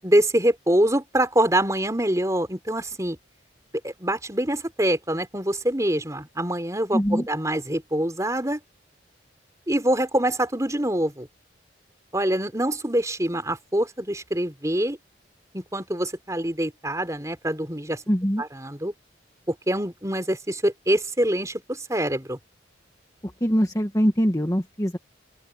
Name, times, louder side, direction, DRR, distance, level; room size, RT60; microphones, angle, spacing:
voice 1, 0.0-3.2 3.8-8.6 9.7-11.3 12.1-15.0 15.5-18.0 18.4-18.9 19.5-22.4, right 1 dB, 15° right, 3.9 m, -25 dB
voice 2, 6.9-7.3 18.1-18.4 23.4-25.0, equal, 20° left, 1.6 m, -22 dB
open air
head